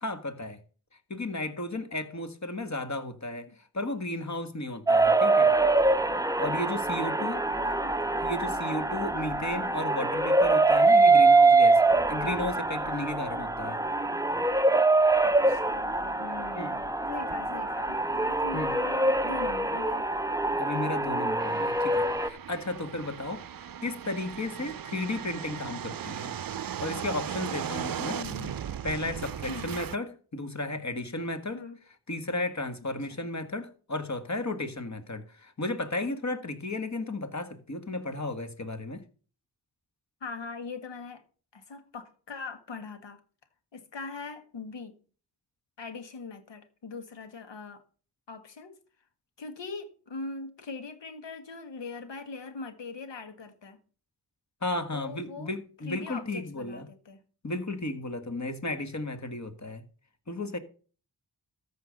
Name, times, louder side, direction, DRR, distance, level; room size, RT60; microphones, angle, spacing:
voice 1, 0.0-0.6 1.1-5.5 6.4-7.4 8.2-11.8 12.1-13.8 16.5-16.8 18.5-18.7 20.6-23.4 23.8-26.4 26.8-28.2 28.8-31.6 32.1-39.0 54.6-56.9 57.4-59.8 60.3-60.6, left 2 dB, 40° left, 1.8 m, -34 dB
sound 1, 4.9-22.3, right 3 dB, 10° right, 0.6 m, -24 dB
voice 2, 7.2-7.9 15.2-20.1 28.0-28.6 29.5-29.8 31.5-31.8 33.1-33.3 40.2-41.2 41.5-43.2 43.7-44.9 45.8-47.8 48.3-48.7 49.4-53.8 54.9-55.5 55.8-57.2, left 4 dB, 90° left, 1.8 m, -41 dB
sound 2, 21.4-30.0, right 9 dB, 55° right, 0.6 m, -37 dB
14.0 x 5.2 x 6.6 m
cardioid pair, 60°, 42 cm